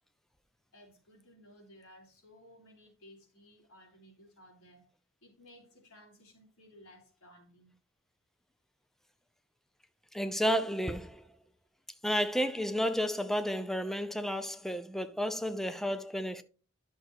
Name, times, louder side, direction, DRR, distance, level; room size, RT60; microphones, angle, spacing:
voice 1, 0.7-4.9 5.2-7.8, equal, 85° left, 3.5 m, -58 dB
voice 2, 10.1-11.2 12.0-16.4, equal, ahead, 0.5 m, -31 dB
11.0 x 6.5 x 3.0 m
head